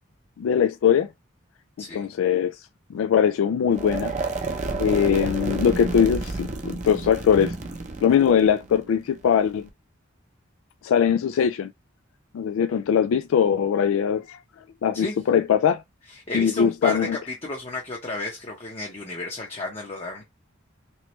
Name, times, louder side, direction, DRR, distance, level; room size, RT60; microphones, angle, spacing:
voice 1, 0.4-1.1 1.9-2.6 2.9-4.1 4.8-7.5 8.0-9.6 10.8-11.7 12.3-14.4 14.8-15.8 16.3-17.2, left 8 dB, 85° left, 0.3 m, -21 dB
sound 1, 3.7-9.7, right 3 dB, 35° right, 0.6 m, -31 dB
voice 2, 16.1-20.2, left 2 dB, 30° left, 0.7 m, -32 dB
3.1 x 3.1 x 3.0 m
head